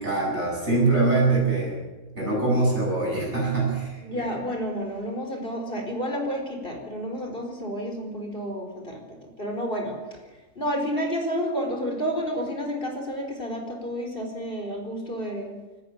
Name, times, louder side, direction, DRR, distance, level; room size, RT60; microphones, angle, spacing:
voice 1, 0.0-1.7 2.2-4.3, right 3 dB, 55° right, -3 dB, 8.4 m, -23 dB
voice 2, 4.0-9.0 9.4-10.0 10.6-15.5, equal, 40° left, 2 dB, 4.7 m, -30 dB
27.0 x 14.5 x 8.9 m, 1.2 s
omnidirectional pair, 1.4 m